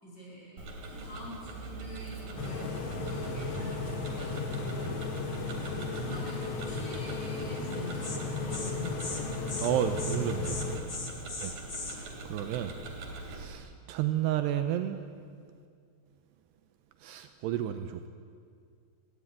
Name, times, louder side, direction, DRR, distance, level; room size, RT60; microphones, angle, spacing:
voice 1, 0.0-4.9 5.8-9.3 11.1-11.3, left 1 dB, 20° left, -4 dB, 6.1 m, -46 dB
Tick-tock, 0.6-13.4, right 2 dB, 55° right, 3.9 m, -43 dB
sound 1, 2.4-10.8, left 3 dB, 55° left, 1.9 m, -35 dB
Insect, 7.6-7.7 8.0-8.2 8.5-8.7 9.0-9.2 9.5-9.7 10.0-10.2 10.4-12.0, left 3 dB, 90° left, 0.7 m, -38 dB
voice 2, 9.6-10.6 11.4-11.5 12.3-12.7 13.2-15.0 17.0-18.1, right 10 dB, 80° right, 8 dB, 2.7 m, -31 dB
20.0 x 15.5 x 9.0 m, 2.2 s
omnidirectional pair, 5.2 m